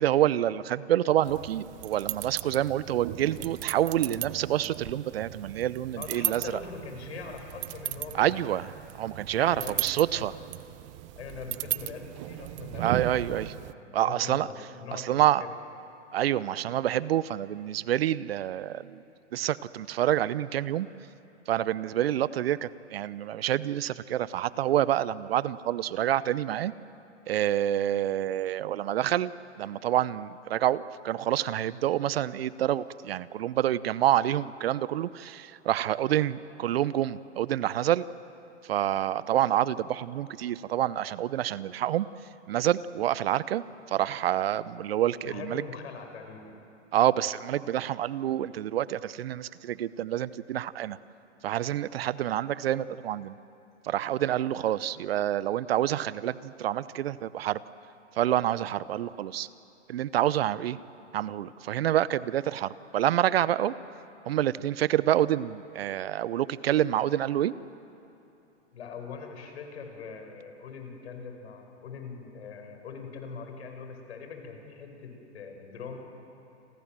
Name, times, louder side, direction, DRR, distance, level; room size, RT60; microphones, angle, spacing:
voice 1, 0.0-6.4 8.2-8.7 9.0-10.3 12.8-13.5 13.9-14.5 14.9-15.4 16.1-19.0 19.3-20.9 21.5-26.7 27.3-38.1 38.7-42.1 42.5-43.6 43.9-45.6 46.9-51.0 51.4-53.4 53.8-57.6 58.2-59.5 59.9-60.8 61.1-63.7 64.3-67.5, right 12 dB, 55° right, 18 dB, 0.8 m, -27 dB
sound 1, 1.2-13.7, right 18 dB, 25° right, 0.5 m, -37 dB
voice 2, 6.0-8.4 9.4-10.3 11.2-15.5 45.2-46.6 68.7-76.0, left 5 dB, 65° left, 4 dB, 5.8 m, -42 dB
29.5 x 23.0 x 7.6 m, 2.8 s
hypercardioid pair, 130°, 36 cm